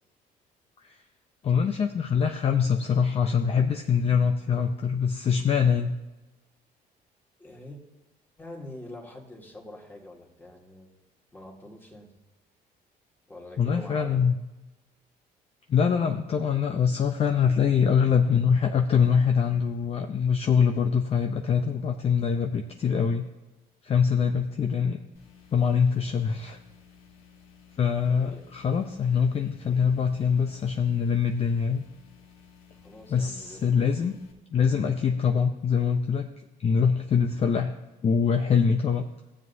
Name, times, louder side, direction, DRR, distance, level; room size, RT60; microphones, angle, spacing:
voice 1, 1.4-6.0 13.6-14.4 15.7-23.3 23.8-25.0 25.5-26.6 27.8-31.8 33.1-34.1 34.5-36.3 36.6-37.7 38.0-39.1, left 6 dB, 35° left, 5 dB, 0.6 m, -24 dB
voice 2, 7.4-7.8 8.4-10.9 11.3-12.1 13.3-14.2 28.1-28.4 32.8-33.6, left 1 dB, 10° left, -1 dB, 2.0 m, -44 dB
sound 1, 25.1-34.3, left 6 dB, 65° left, 2.1 m, -55 dB
16.0 x 7.5 x 2.7 m, 1.0 s
cardioid pair, 110°, 17 cm